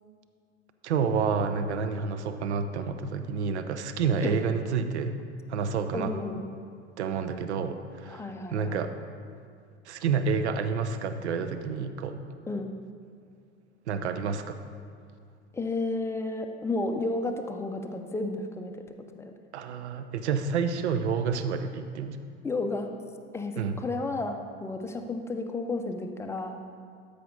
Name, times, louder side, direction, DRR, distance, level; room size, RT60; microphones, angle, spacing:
voice 1, 0.8-5.2 5.5-6.1 7.0-8.9 9.9-12.2 13.9-14.6 19.5-22.2 23.6-23.8, right 5 dB, 70° right, 9 dB, 0.6 m, -29 dB
voice 2, 5.9-6.4 8.1-8.8 12.5-12.7 15.5-18.7 19.1-19.3 22.4-22.9 23.3-26.6, left 2 dB, 10° left, 4 dB, 0.6 m, -32 dB
12.5 x 5.1 x 4.0 m, 2.3 s
figure-of-eight pair, 70°, 35 cm